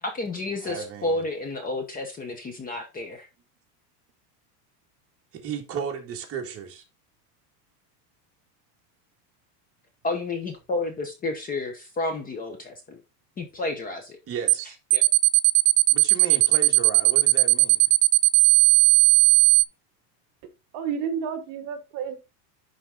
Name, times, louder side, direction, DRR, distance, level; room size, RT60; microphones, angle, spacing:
voice 1, 0.0-3.3 10.0-13.0 13.4-14.2 14.9-15.0, left 2 dB, 15° left, 1.0 m, -31 dB
voice 2, 0.6-1.2 5.3-6.8 14.3-14.8 15.9-17.9, right 7 dB, 30° right, 1.9 m, -34 dB
sound 1, 14.5-14.6 14.9-19.6, right 20 dB, 80° right, 0.6 m, -17 dB
voice 3, 20.7-22.2, right 7 dB, 45° right, 1.4 m, -30 dB
11.0 x 4.0 x 3.7 m
supercardioid pair, 160°, 48 cm